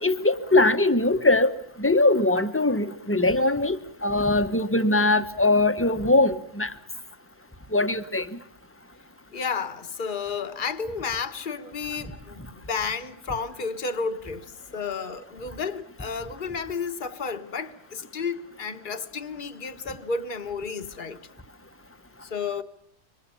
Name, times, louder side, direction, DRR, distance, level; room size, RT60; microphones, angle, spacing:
voice 1, 0.0-1.5 1.8-6.7 7.7-8.3, left 2 dB, 10° left, 1.2 m, -21 dB
voice 2, 9.3-21.2 22.2-22.6, left 5 dB, 40° left, 1.5 m, -32 dB
27.5 x 24.5 x 7.0 m
omnidirectional pair, 1.3 m